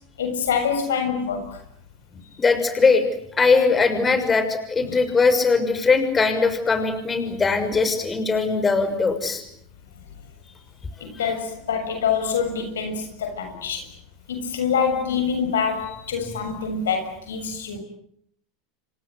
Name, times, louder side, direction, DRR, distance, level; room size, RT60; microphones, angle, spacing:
voice 1, 0.2-1.6 11.0-13.9 14.3-17.8, left 6 dB, 90° left, 7.3 m, -25 dB
voice 2, 2.4-3.0 3.4-9.4, left 4 dB, 20° left, 6.3 m, -20 dB
29.0 x 25.0 x 8.0 m
hypercardioid pair, 105°, 0 cm